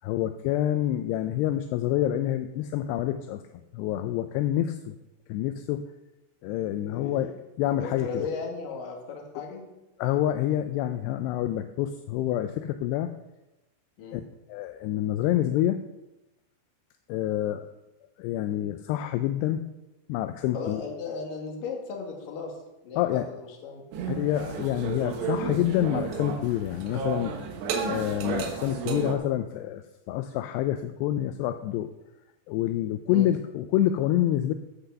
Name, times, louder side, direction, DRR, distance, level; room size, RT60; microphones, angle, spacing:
voice 1, 0.0-3.4 3.7-4.9 5.3-5.8 6.4-7.3 7.6-8.3 10.0-13.1 14.1-14.2 14.5-15.8 17.1-17.7 18.2-19.6 20.1-20.8 23.0-23.3 24.1-27.3 27.8-31.9 32.5-34.5, left 12 dB, 85° left, 8 dB, 2.6 m, -27 dB
voice 2, 6.8-7.2 7.8-9.7 14.0-14.2 20.5-22.5 22.8-23.8 33.1-33.3, left 5 dB, 60° left, 1 dB, 3.1 m, -36 dB
sound 1, 23.9-29.2, right 6 dB, 75° right, 3.3 m, -32 dB
11.5 x 5.7 x 6.9 m, 0.97 s
omnidirectional pair, 5.0 m